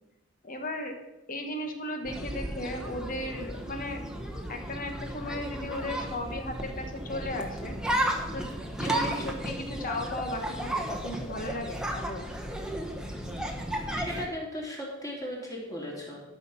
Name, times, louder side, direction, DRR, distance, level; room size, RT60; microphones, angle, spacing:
voice 1, 0.4-1.0 1.3-4.0 4.5-7.8 8.3-8.5 8.8-12.3, left 1 dB, 45° left, 5 dB, 1.5 m, -36 dB
sound 1, 2.0-14.3, right 1 dB, 5° right, 1.1 m, -34 dB
voice 2, 13.9-16.3, equal, 20° left, -3 dB, 3.0 m, -37 dB
12.5 x 6.2 x 5.6 m, 0.98 s
head